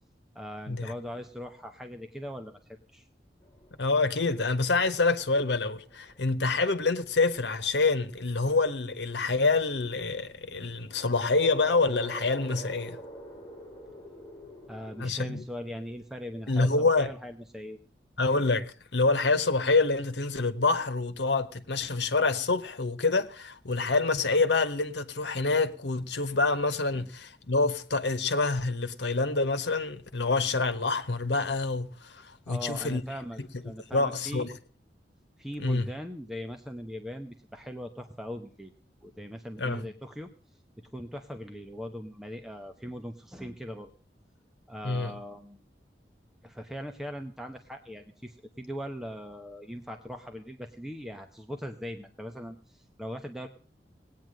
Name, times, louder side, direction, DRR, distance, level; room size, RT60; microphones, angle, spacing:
voice 1, 0.3-3.1 14.7-17.8 26.9-27.1 32.5-34.5 35.4-38.7 39.0-40.3 40.8-43.9 44.7-45.6 46.4-53.5, equal, 5° right, 0.9 m, -40 dB
sound 1, 3.4-15.1, right 1 dB, 20° left, 2.9 m, -47 dB
voice 2, 3.8-13.0 15.0-15.4 16.5-17.1 18.2-33.0 33.4-33.5 33.9-34.6 35.6-35.9 39.6-39.9 44.8-45.1, left 3 dB, 85° left, 1.2 m, -27 dB
19.0 x 9.3 x 6.4 m
head